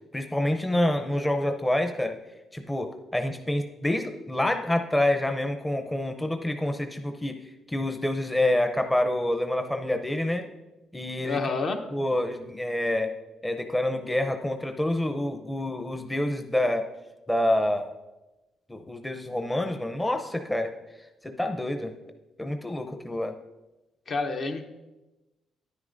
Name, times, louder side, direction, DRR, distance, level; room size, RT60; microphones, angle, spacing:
voice 1, 0.1-2.2 2.5-7.4 7.7-10.5 10.9-11.4 11.9-16.9 17.3-17.9 18.7-20.7 21.2-21.9 22.4-23.4, left 1 dB, 10° left, 6 dB, 0.6 m, -27 dB
voice 2, 11.2-11.8 24.1-24.6, left 3 dB, 55° left, 5 dB, 0.9 m, -28 dB
10.0 x 9.6 x 2.6 m, 1.1 s
cardioid pair, 90°, 0 cm